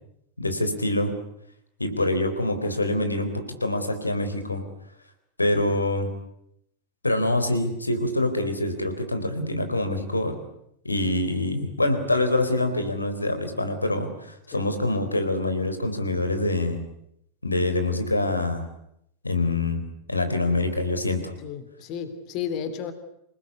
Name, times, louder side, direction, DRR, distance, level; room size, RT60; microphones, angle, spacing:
voice 1, 0.4-1.2 1.8-4.6 5.4-6.1 7.0-10.4 10.8-16.8 17.4-18.7 19.2-19.8 20.1-21.3, left 2 dB, 80° left, 8 dB, 4.1 m, -25 dB
voice 2, 21.4-22.9, left 8 dB, 40° left, 11 dB, 3.1 m, -33 dB
28.0 x 19.5 x 9.6 m, 0.77 s
figure-of-eight pair, 90°, 0 cm